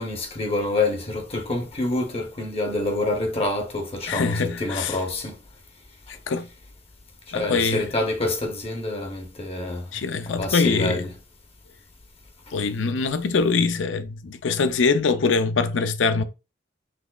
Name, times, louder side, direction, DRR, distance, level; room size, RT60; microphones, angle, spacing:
voice 1, 0.0-5.4 7.3-9.8 10.3-11.1, left 2 dB, 30° left, 0.8 m, -27 dB
voice 2, 4.1-5.0 6.3-6.5 7.3-7.9 9.9-11.0 12.5-16.2, left 4 dB, 75° left, 0.5 m, -23 dB
5.9 x 3.0 x 2.3 m
head